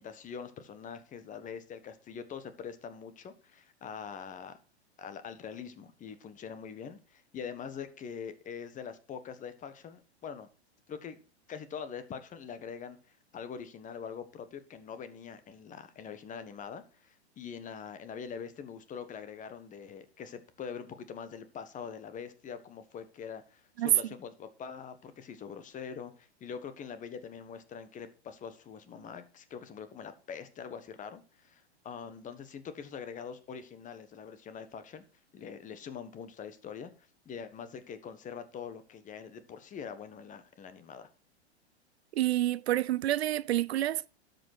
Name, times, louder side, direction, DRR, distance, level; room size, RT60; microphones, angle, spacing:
voice 1, 0.0-4.6 5.0-10.5 10.9-11.2 11.5-13.0 13.3-35.0 35.3-36.9 37.2-41.1, left 7 dB, 25° left, 1.4 m, -43 dB
voice 2, 42.2-44.1, right 14 dB, 65° right, 0.6 m, -28 dB
12.5 x 5.3 x 6.2 m
hypercardioid pair, 110°, 34 cm